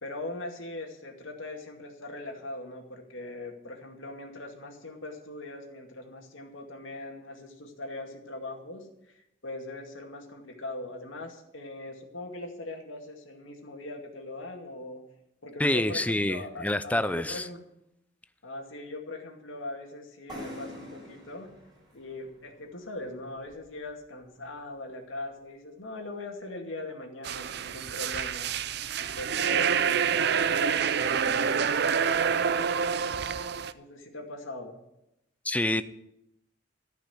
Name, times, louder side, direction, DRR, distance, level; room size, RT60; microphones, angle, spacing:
voice 1, 0.0-15.0 15.4-17.6 18.4-21.5 21.9-28.5 29.0-32.3 33.7-34.8, left 2 dB, 85° left, 2 dB, 2.3 m, -40 dB
voice 2, 15.6-17.5 35.4-35.8, left 1 dB, 5° left, 13 dB, 0.5 m, -27 dB
sound 1, 20.3-23.9, left 1 dB, 20° right, 4.7 m, -46 dB
sound 2, 27.2-33.7, right 7 dB, 55° right, 0.5 m, -27 dB
13.5 x 5.9 x 9.2 m, 0.84 s
head